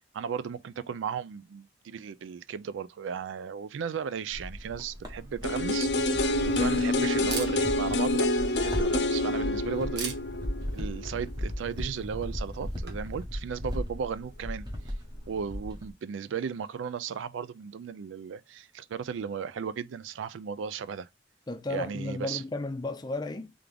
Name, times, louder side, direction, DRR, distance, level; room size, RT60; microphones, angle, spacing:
voice 1, 0.1-10.1 10.7-14.7 15.3-21.1 21.7-22.4, right 6 dB, 80° right, 0.4 m, -35 dB
pump ball basketball, 4.3-15.9, equal, 20° right, 1.1 m, -37 dB
Camera, 4.9-13.3, right 5 dB, 60° right, 1.3 m, -45 dB
sound 1, 5.4-11.3 11.6-11.7, left 2 dB, 60° left, 0.7 m, -28 dB
voice 2, 21.5-23.5, left 2 dB, 20° left, 0.5 m, -34 dB
3.7 x 3.4 x 3.4 m
head